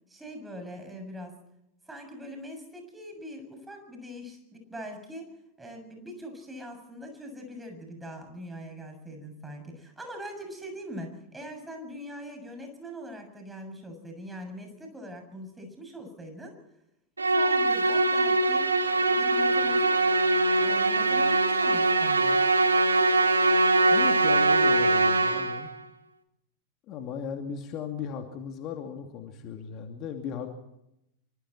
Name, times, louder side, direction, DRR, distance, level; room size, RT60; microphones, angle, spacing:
voice 1, 0.1-1.3 1.9-5.3 5.6-16.6 17.2-18.7 19.1-20.0 20.6-22.5, equal, 10° right, 4 dB, 7.0 m, -42 dB
Musical instrument, 17.2-25.7, right 2 dB, 75° right, 1.8 m, -22 dB
voice 2, 23.9-25.7 26.9-30.5, left 7 dB, 35° left, 4 dB, 2.6 m, -37 dB
26.5 x 24.5 x 4.3 m, 0.84 s
figure-of-eight pair, 90°, 0 cm